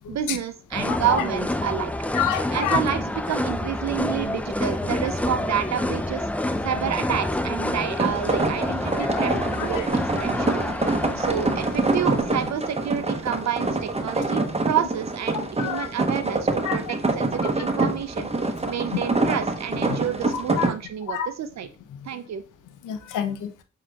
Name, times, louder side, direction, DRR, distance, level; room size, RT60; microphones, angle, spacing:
voice 1, 0.1-1.9 2.5-6.3 6.6-9.9 10.2-18.3 18.7-21.7 22.1-22.4, right 9 dB, 60° right, 11 dB, 0.5 m, -29 dB
sound 1, 0.7-12.5, left 1 dB, 5° left, 0.4 m, -28 dB
voice 2, 2.1-2.8 9.6-9.8 10.3-10.4 11.1-11.2 15.3-15.9 16.6-16.8 19.9-20.0 20.3-20.7 21.1-21.3 22.8-23.5, left 9 dB, 80° left, 8 dB, 0.6 m, -28 dB
sound 2, 7.9-20.7, right 2 dB, 20° right, 0.9 m, -26 dB
7.2 x 2.9 x 2.3 m, 0.34 s
supercardioid pair, 45°, 30 cm